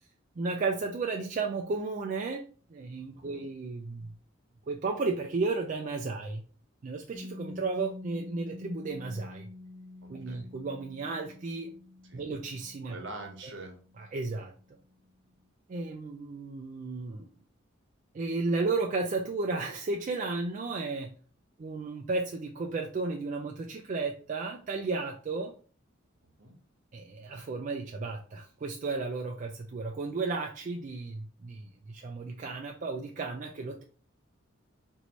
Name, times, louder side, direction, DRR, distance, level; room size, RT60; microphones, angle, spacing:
voice 1, 0.4-2.4 2.7-4.1 4.7-6.4 6.8-9.5 10.1-11.7 12.1-13.0 14.0-14.5 15.7-17.3 18.1-21.1 21.6-25.5 26.9-33.8, right 3 dB, 40° right, 2 dB, 0.3 m, -33 dB
Piano, 7.1-14.4, left 2 dB, 35° left, 0.8 m, -47 dB
voice 2, 10.0-10.5 12.0-12.2 12.8-13.8 26.2-26.5, right 2 dB, 65° right, 3 dB, 1.1 m, -45 dB
4.5 x 2.6 x 3.0 m, 0.41 s
head